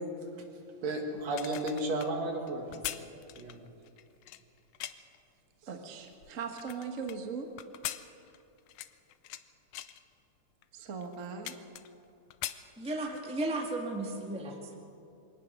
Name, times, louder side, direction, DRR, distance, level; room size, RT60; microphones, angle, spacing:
voice 1, 0.8-3.0 3.4-3.7, right 2 dB, 65° right, 3 dB, 3.0 m, -33 dB
sound 1, 1.2-5.2 5.8-7.2 7.6-9.4 9.7-10.0 10.6-10.7 11.0-12.0 12.3-13.3 13.7-13.8, left 13 dB, 80° left, 2.0 m, -42 dB
voice 2, 5.6-7.5 10.7-11.6, right 5 dB, 40° right, 3 dB, 1.1 m, -39 dB
voice 3, 12.8-14.7, right 2 dB, 5° right, 1 dB, 1.3 m, -34 dB
23.0 x 18.5 x 6.4 m, 2.6 s
omnidirectional pair, 3.4 m